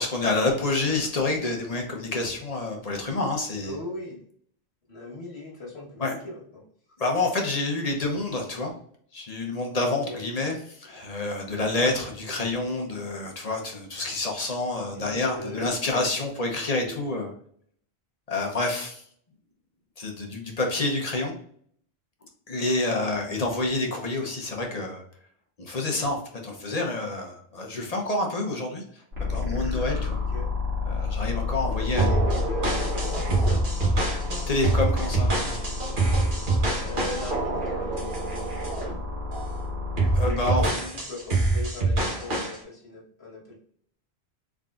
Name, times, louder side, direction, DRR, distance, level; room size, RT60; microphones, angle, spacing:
voice 1, 0.0-3.7 6.0-6.2 7.0-8.7 9.1-17.3 18.3-19.0 20.0-21.3 22.5-25.0 25.6-26.2 26.4-29.0 29.3-30.2 30.8-32.1 34.5-35.3 40.1-40.6, left 2 dB, 40° left, 1 dB, 0.9 m, -28 dB
voice 2, 3.6-4.2 4.9-6.7 9.9-10.2 11.8-12.0 14.9-15.7 16.5-17.1 30.3-30.5 31.8-33.6 36.8-38.5 40.2-43.6, left 2 dB, 75° left, -2 dB, 1.6 m, -39 dB
sound 1, 29.1-40.3, left 3 dB, 70° right, 1.8 m, -30 dB
sound 2, 32.0-38.9 39.3-39.6 40.0-42.6, right 2 dB, 50° right, 1.2 m, -26 dB
3.9 x 3.7 x 2.3 m, 0.62 s
omnidirectional pair, 1.1 m